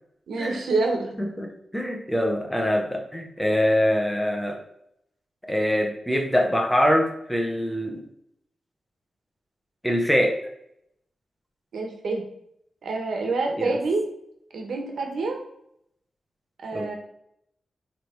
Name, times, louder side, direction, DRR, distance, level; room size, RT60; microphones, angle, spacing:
voice 1, 0.3-1.2 11.7-12.2 12.8-14.1 14.5-15.4 16.6-16.9, right 3 dB, 90° right, 2 dB, 1.4 m, -27 dB
voice 2, 1.4-4.6 5.5-8.0 9.8-10.4 13.6-13.8 16.7-16.9, equal, ahead, 2 dB, 1.0 m, -24 dB
9.7 x 3.4 x 4.6 m, 0.76 s
wide cardioid pair, 170°, 0 cm